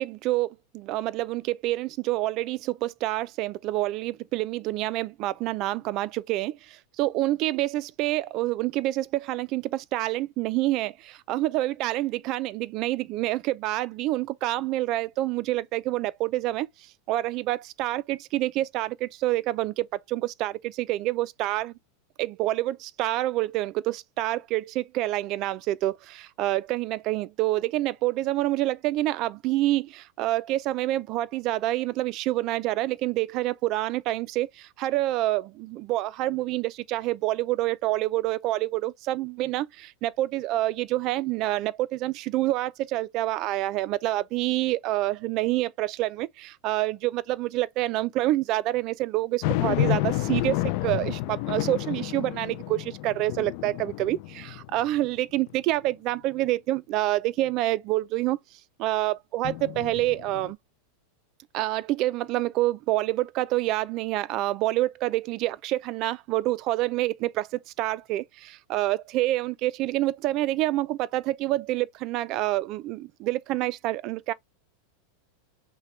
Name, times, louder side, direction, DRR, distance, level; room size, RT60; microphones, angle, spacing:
voice 1, 0.0-16.7 17.1-21.7 22.2-58.4 58.8-60.6 61.5-74.3, right 16 dB, 40° right, 0.4 m, -27 dB
sound 1, 49.4-55.0 55.5-55.6 59.4-60.5, left 16 dB, 50° left, 0.3 m, -30 dB
5.7 x 2.2 x 3.1 m
supercardioid pair, 155°, 0 cm